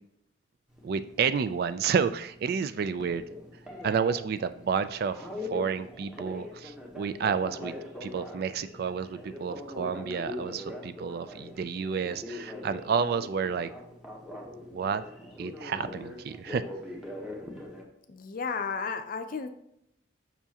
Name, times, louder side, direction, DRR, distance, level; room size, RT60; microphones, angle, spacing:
Telephone, 0.7-17.8, left 2 dB, 5° right, 1.0 m, -42 dB
voice 1, 0.8-3.2 3.8-7.7 8.0-13.7 14.7-15.0 15.4-16.7, right 6 dB, 55° right, 13 dB, 0.3 m, -30 dB
voice 2, 18.1-19.5, left 5 dB, 50° left, 8 dB, 0.5 m, -33 dB
7.0 x 5.7 x 2.8 m, 0.77 s
head